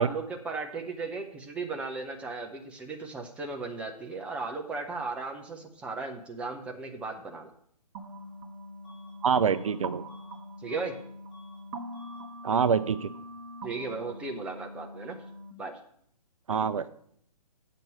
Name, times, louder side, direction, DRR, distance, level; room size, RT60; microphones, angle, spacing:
voice 1, 0.0-7.5 10.6-10.9 13.6-15.2 15.6-15.8, right 3 dB, 5° right, 3 dB, 0.6 m, -36 dB
sound 1, 7.9-15.5, right 1 dB, 30° right, 1.3 m, -43 dB
Bus / Alarm, 8.8-9.2 9.5-11.0 11.3-11.6 11.9-12.3, left 4 dB, 25° left, 4.3 m, -57 dB
voice 2, 9.2-10.0 12.4-13.1 16.5-16.9, right 6 dB, 55° right, 13 dB, 0.5 m, -25 dB
7.4 x 5.3 x 7.4 m, 0.65 s
figure-of-eight pair, 130°, 20 cm